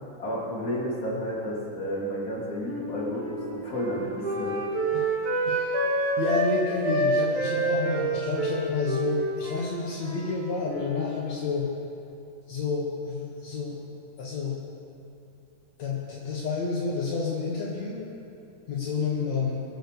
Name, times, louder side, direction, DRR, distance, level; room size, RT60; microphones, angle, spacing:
voice 1, 0.2-4.6, equal, 30° left, -6 dB, 3.8 m, -31 dB
Wind instrument woodwind instrument, 2.6-6.5 6.8-10.4 10.6-11.2, right 2 dB, 75° right, 3.5 m, -28 dB
voice 2, 5.4-5.8 6.2-11.7 12.5-13.8 14.2-14.6 15.8-18.1 18.7-19.6, left 4 dB, 65° left, -4 dB, 2.7 m, -30 dB
22.0 x 8.2 x 6.9 m, 2.6 s
omnidirectional pair, 3.5 m